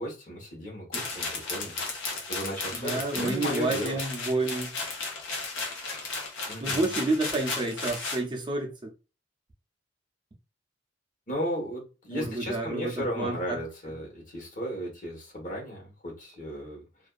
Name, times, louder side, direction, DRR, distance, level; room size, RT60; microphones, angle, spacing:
voice 1, 0.0-2.0 2.3-4.0 6.5-6.9 11.3-16.8, equal, 45° left, 1.1 m, -35 dB
sound 1, 0.9-8.2, left 3 dB, 85° left, 0.7 m, -34 dB
voice 2, 2.8-4.7 6.6-8.9 12.1-13.6, right 2 dB, 25° right, 0.4 m, -29 dB
2.5 x 2.3 x 2.3 m
head